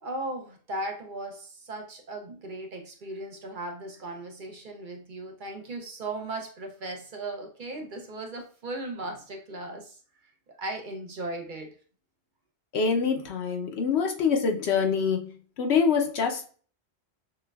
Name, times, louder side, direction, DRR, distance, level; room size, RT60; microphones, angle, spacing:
voice 1, 0.0-10.0 10.5-11.7, right 2 dB, 55° right, 3 dB, 0.8 m, -37 dB
voice 2, 12.7-16.5, left 5 dB, 75° left, 3 dB, 1.0 m, -25 dB
6.4 x 2.3 x 2.3 m, 0.42 s
omnidirectional pair, 1.1 m